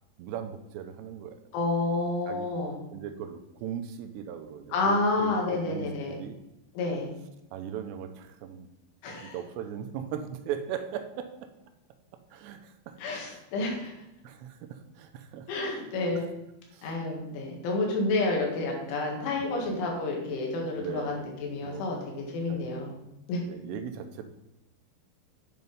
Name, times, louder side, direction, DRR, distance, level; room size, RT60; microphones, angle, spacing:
voice 1, 0.2-1.5 2.3-2.5 2.9-6.4 7.5-8.7 9.1-11.5 12.3-13.4 13.8-13.9 14.2-15.9 16.1-16.3 16.7-16.9 18.1-18.3 19.3-19.9 20.8-21.3 21.6-21.8 22.5-22.7 23.5-24.3, right 9 dB, 80° right, 7 dB, 2.7 m, -39 dB
voice 2, 1.5-2.8 4.7-6.1 6.8-7.1 9.0-9.4 13.0-13.9 15.5-16.3 16.8-21.1 21.4-22.0 22.3-22.9 23.3-23.4, left 2 dB, 80° left, -1 dB, 4.4 m, -29 dB
9.5 x 5.4 x 5.5 m, 0.93 s
omnidirectional pair, 5.4 m